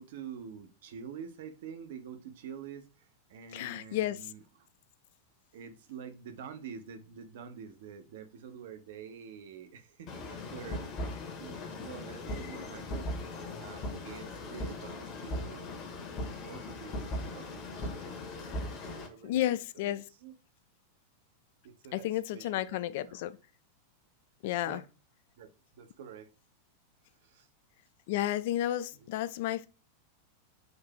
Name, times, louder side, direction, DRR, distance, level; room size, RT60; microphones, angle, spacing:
voice 1, 0.0-4.7 5.5-10.9 11.4-13.3 13.6-15.7 16.4-18.0 18.3-20.3 21.6-23.2 24.6-24.9 25.4-26.3 27.1-27.5 28.9-29.2, right 7 dB, 55° right, 0.7 m, -47 dB
voice 2, 3.5-4.2 19.2-20.0 21.9-23.3 24.4-24.8 28.1-29.7, left 13 dB, 50° left, 0.3 m, -32 dB
sound 1, 10.1-19.1, left 1 dB, 35° left, 1.0 m, -39 dB
3.9 x 2.6 x 3.4 m
figure-of-eight pair, 90°, 0 cm